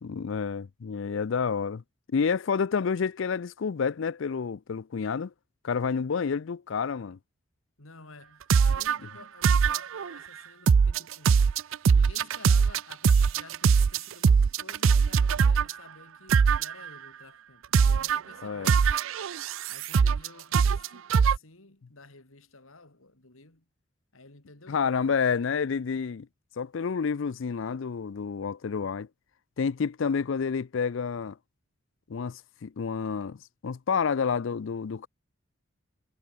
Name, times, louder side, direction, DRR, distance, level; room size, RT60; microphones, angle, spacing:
voice 1, 0.0-1.8 2.1-5.3 5.6-7.2 18.4-18.7 24.7-26.3 26.6-29.1 29.6-31.4 32.1-35.1, left 6 dB, 65° left, 0.4 m, -29 dB
voice 2, 7.8-11.3 11.9-18.8 19.7-23.7 24.1-25.2, left 3 dB, 85° left, 3.3 m, -52 dB
sound 1, 8.5-9.0 9.4-10.1 10.7-15.7 16.3-16.9 17.7-18.2 18.7-20.3 20.5-21.4, right 6 dB, 75° right, 0.4 m, -21 dB
head